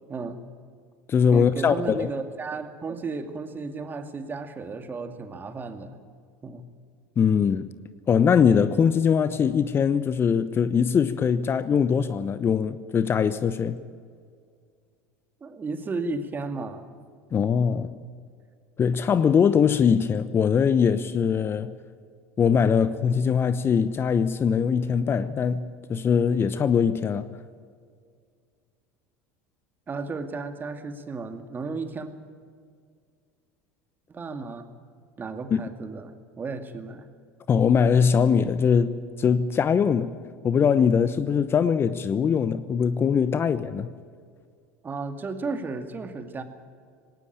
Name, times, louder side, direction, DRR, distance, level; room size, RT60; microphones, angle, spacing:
voice 1, 0.1-0.4 1.3-6.0 6.4-6.7 15.4-16.9 29.9-32.1 34.1-34.7 35.2-37.1 44.8-46.4, right 3 dB, 25° right, 2.3 m, -34 dB
voice 2, 1.1-2.1 7.2-7.7 8.1-13.8 17.3-17.9 18.8-21.8 22.4-27.3 35.5-35.6 37.5-40.2 40.4-43.9, left 7 dB, 35° left, 0.9 m, -22 dB
19.5 x 18.5 x 8.7 m
hypercardioid pair, 75°, 7 cm